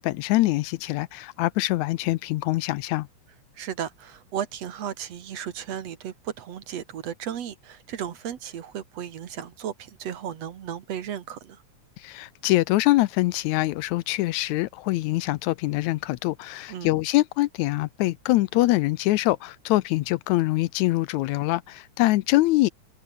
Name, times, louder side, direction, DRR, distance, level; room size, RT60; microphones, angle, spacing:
voice 1, 0.0-3.1 12.0-22.7, left 18 dB, 80° left, 1.9 m, -24 dB
voice 2, 3.6-11.6 16.7-16.9, right 9 dB, 60° right, 2.5 m, -35 dB
omnidirectional pair, 3.4 m